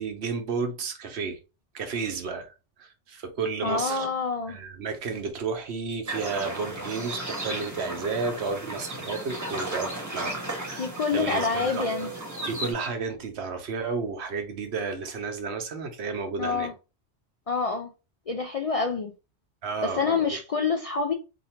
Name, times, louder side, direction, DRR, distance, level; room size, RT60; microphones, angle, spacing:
voice 1, 0.0-1.4 1.7-2.5 2.8-4.1 4.5-11.9 12.4-16.7 19.6-20.0, right 4 dB, 75° right, 1.0 m, -32 dB
voice 2, 3.6-4.6 10.7-12.1 16.4-16.7 17.5-17.9 18.3-19.1 19.8-21.1, left 4 dB, 60° left, 0.4 m, -27 dB
sound 1, 6.1-12.7, right 1 dB, 15° right, 1.0 m, -34 dB
2.8 x 2.6 x 4.2 m
omnidirectional pair, 1.1 m